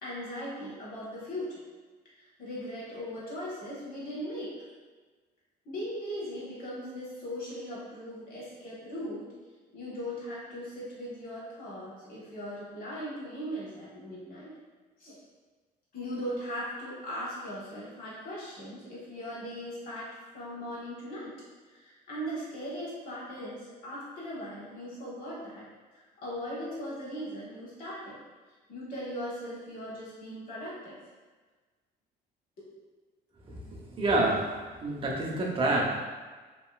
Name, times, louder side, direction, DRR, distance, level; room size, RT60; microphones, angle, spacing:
voice 1, 0.0-1.6 2.2-4.5 5.6-9.3 9.7-14.5 15.0-15.2 15.9-20.1 20.3-21.3 21.7-25.6 25.9-28.2 28.7-31.0 32.6-32.7, equal, 60° left, -7 dB, 1.3 m, -39 dB
voice 2, 33.5-34.5 34.8-36.0, right 2 dB, 30° right, -2 dB, 0.6 m, -28 dB
2.9 x 2.6 x 2.3 m, 1.3 s
cardioid pair, 110°, 17 cm